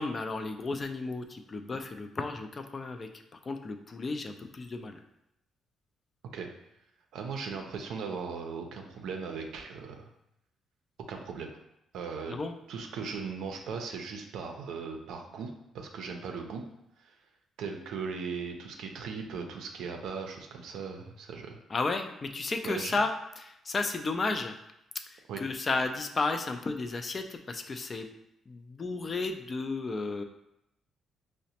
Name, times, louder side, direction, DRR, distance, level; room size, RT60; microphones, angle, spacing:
voice 1, 0.0-5.0 12.3-12.5 21.7-24.5 25.1-28.1 28.5-30.2, left 3 dB, 35° left, 6 dB, 0.3 m, -33 dB
voice 2, 7.1-10.1 11.1-11.5 11.9-12.4 12.7-16.6 17.0-17.2 17.6-21.6 22.6-22.9 25.3-25.4, right 5 dB, 80° right, 3 dB, 0.5 m, -38 dB
4.8 x 2.1 x 2.8 m, 0.83 s
cardioid pair, 90°, 0 cm